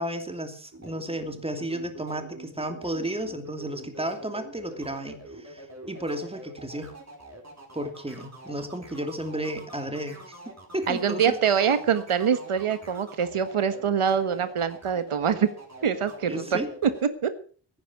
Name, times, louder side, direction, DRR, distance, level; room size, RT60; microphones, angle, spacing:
voice 1, 0.0-6.9 7.7-10.3 10.7-11.5 16.3-16.7, right 1 dB, 10° right, 6 dB, 2.7 m, -33 dB
sound 1, 0.7-17.1, right 2 dB, 30° right, 5.4 m, -45 dB
voice 2, 10.9-15.5 15.8-16.9 17.2-17.3, right 7 dB, 85° right, 11 dB, 1.5 m, -24 dB
16.5 x 10.0 x 6.2 m, 0.43 s
wide cardioid pair, 110°, 49 cm